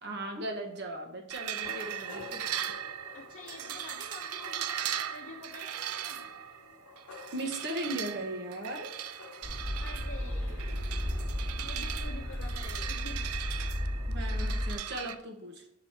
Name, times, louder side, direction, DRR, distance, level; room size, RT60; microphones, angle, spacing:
voice 1, 0.0-2.6 7.3-8.9 14.1-15.7, right 1 dB, 50° right, 3 dB, 1.1 m, -38 dB
sound 1, 1.3-15.1, right 10 dB, 85° right, 0.4 m, -39 dB
sound 2, 1.6-12.7, left 3 dB, 80° left, 0.8 m, -52 dB
voice 2, 3.1-6.3 9.8-11.0 11.5-13.4, left 2 dB, 50° left, -2 dB, 0.8 m, -48 dB
sound 3, 9.4-14.7, equal, 25° right, 1.4 m, -34 dB
6.1 x 4.9 x 5.8 m, 0.77 s
head